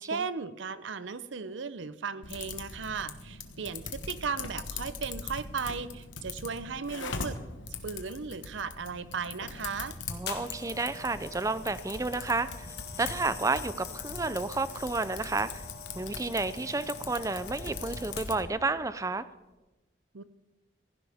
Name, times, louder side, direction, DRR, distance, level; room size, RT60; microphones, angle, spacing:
voice 1, 0.0-7.4 7.8-10.0 20.1-20.2, right 5 dB, 80° right, 14 dB, 0.7 m, -36 dB
Typing, 2.2-18.5, left 4 dB, 85° left, 1.4 m, -41 dB
voice 2, 10.1-12.7 13.0-15.7 15.9-19.2, right 3 dB, 15° right, 14 dB, 0.4 m, -31 dB
sound 1, 10.3-18.6 19.3-19.5, left 5 dB, 55° left, 1.4 m, -44 dB
16.0 x 15.5 x 3.5 m, 1.1 s
head